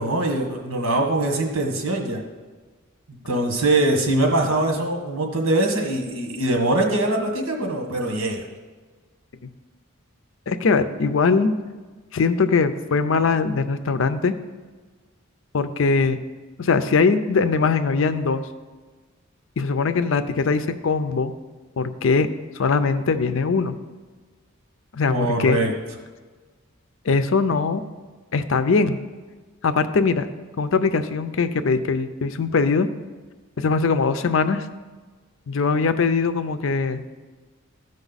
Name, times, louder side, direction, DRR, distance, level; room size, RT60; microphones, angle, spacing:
voice 1, 0.0-2.2 3.1-8.5 25.1-25.7, right 2 dB, 90° right, 2 dB, 1.5 m, -22 dB
voice 2, 10.5-11.6 12.1-14.4 15.5-16.2 16.6-18.4 19.6-21.3 21.8-22.3 22.5-23.8 24.9-25.6 27.0-27.8 28.3-29.0 29.6-30.3 30.6-32.9 33.6-34.7 35.5-37.0, left 4 dB, 65° left, 11 dB, 0.5 m, -21 dB
14.0 x 5.3 x 4.0 m, 1.4 s
head